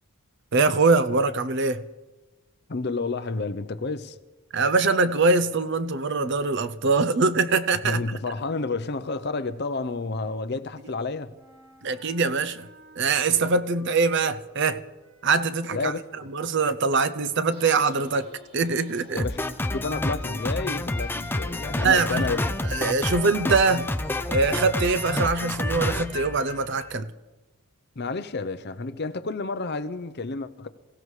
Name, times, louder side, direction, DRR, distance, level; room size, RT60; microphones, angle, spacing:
voice 1, 0.5-1.8 4.5-8.0 11.8-12.7 13.0-14.8 15.2-15.9 16.3-18.3 18.5-19.2 21.8-22.3 22.7-23.9 24.3-27.1, right 4 dB, 55° right, 0.6 m, -23 dB
voice 2, 2.7-4.2 7.8-11.3 15.7-16.0 19.1-19.4 19.7-22.5 28.0-30.7, left 3 dB, 50° left, 0.7 m, -30 dB
sound 1, 11.3-20.9, left 1 dB, 75° right, 6.1 m, -54 dB
sound 2, 17.5-26.3, left 1 dB, 30° right, 6.9 m, -52 dB
Drum kit, 19.2-27.0, left 1 dB, 10° left, 0.4 m, -29 dB
27.0 x 16.0 x 3.3 m
head